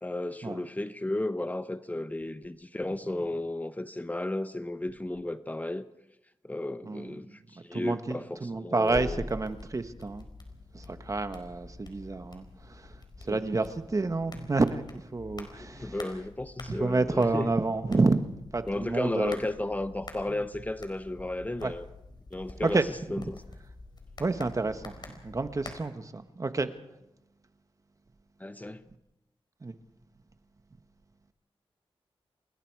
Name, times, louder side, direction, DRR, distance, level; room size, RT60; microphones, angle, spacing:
voice 1, 0.0-5.9 6.4-9.2 13.2-13.4 15.5-17.5 18.7-21.9 22.3-23.4 28.4-28.8, left 1 dB, 15° left, 0.9 m, -34 dB
voice 2, 6.8-7.2 7.7-10.3 10.7-12.9 13.2-16.0 16.7-19.4 21.6-21.7 22.6-22.8 23.1-23.2 24.2-26.7 29.6-29.7, right 3 dB, 35° right, 1.4 m, -29 dB
sound 1, 8.8-25.7, left 2 dB, 45° left, 4.5 m, -47 dB
29.0 x 20.5 x 4.8 m
wide cardioid pair, 85°, 10 cm